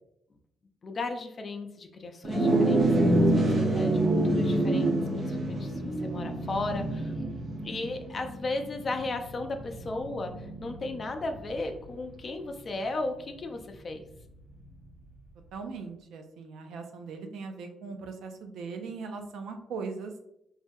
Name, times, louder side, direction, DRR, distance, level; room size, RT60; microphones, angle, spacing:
voice 1, 0.8-7.2 7.6-14.0, left 2 dB, 40° left, 5 dB, 0.4 m, -35 dB
sound 1, 2.2-11.8, right 1 dB, 45° right, 0.8 m, -27 dB
voice 2, 15.5-20.1, right 4 dB, 80° right, 5 dB, 0.4 m, -39 dB
3.3 x 2.3 x 2.6 m, 0.78 s
cardioid pair, 90°, 0 cm